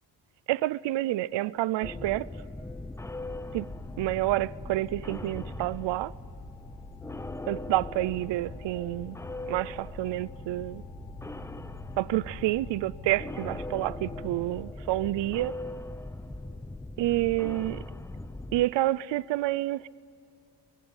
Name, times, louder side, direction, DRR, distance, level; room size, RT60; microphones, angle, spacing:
voice 1, 0.5-2.3 3.5-3.7 4.0-6.1 7.5-9.2 9.5-10.8 12.0-15.5 17.0-17.8 18.5-19.9, right 16 dB, 65° right, 0.5 m, -28 dB
sound 1, 1.8-18.6, left 2 dB, 5° left, 0.5 m, -40 dB
sound 2, 3.2-14.7, left 4 dB, 85° left, 1.2 m, -52 dB
24.0 x 21.0 x 9.6 m
cardioid pair, 170°, 47 cm